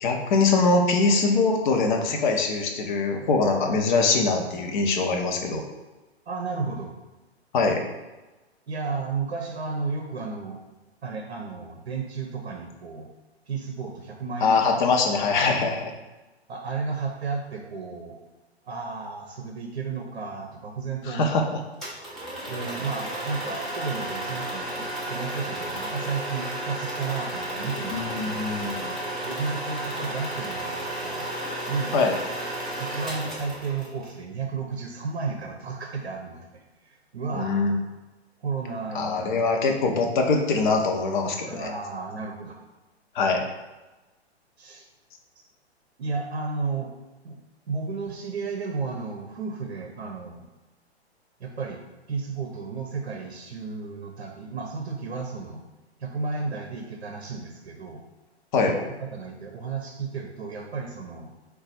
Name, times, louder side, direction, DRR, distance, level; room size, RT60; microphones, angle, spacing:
voice 1, 0.0-5.6 7.5-7.8 14.4-15.9 21.1-21.4 27.9-28.9 31.9-32.2 37.3-37.8 38.9-41.7 43.1-43.4 58.5-58.8, left 3 dB, 45° left, 3 dB, 0.6 m, -23 dB
voice 2, 6.3-6.9 8.7-10.6 11.0-13.1 13.5-14.6 16.5-18.2 18.6-21.3 22.5-28.6 29.2-31.3 31.7-32.0 32.8-37.7 38.4-39.4 40.0-40.1 41.5-42.6 44.6-44.8 46.0-46.9 47.2-47.4 47.7-50.4 51.4-51.8 52.1-55.7 56.0-58.0 58.7-61.3, right 4 dB, 70° right, 2 dB, 0.6 m, -33 dB
sound 1, 21.8-34.1, right 1 dB, ahead, 0.4 m, -33 dB
4.0 x 2.3 x 4.1 m, 1.1 s
figure-of-eight pair, 115°, 33 cm